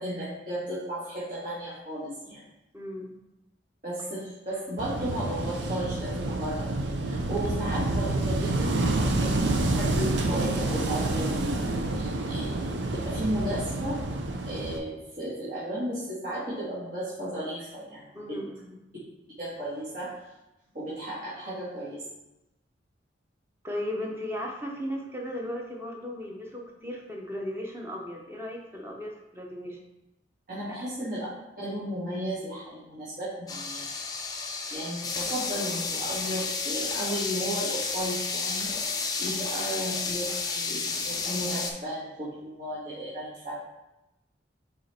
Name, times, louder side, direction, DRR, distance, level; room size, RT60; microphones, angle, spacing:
voice 1, 0.0-2.4 3.8-11.6 11.9-12.8 13.0-14.0 14.4-18.4 19.4-20.1 20.7-22.0 30.5-31.3 31.6-33.9 34.7-43.6, right 1 dB, 50° right, -10 dB, 1.7 m, -34 dB
voice 2, 2.7-3.1 7.3-7.5 12.4-12.6 18.1-18.8 23.6-29.8 30.7-31.0, left 1 dB, 15° right, 0 dB, 0.9 m, -36 dB
Wind / Waves surf, 4.8-14.8, right 2 dB, 80° right, 0.6 m, -28 dB
sound 1, 33.5-41.7, left 4 dB, 20° left, 0.6 m, -31 dB
5.5 x 4.1 x 4.3 m, 0.95 s
head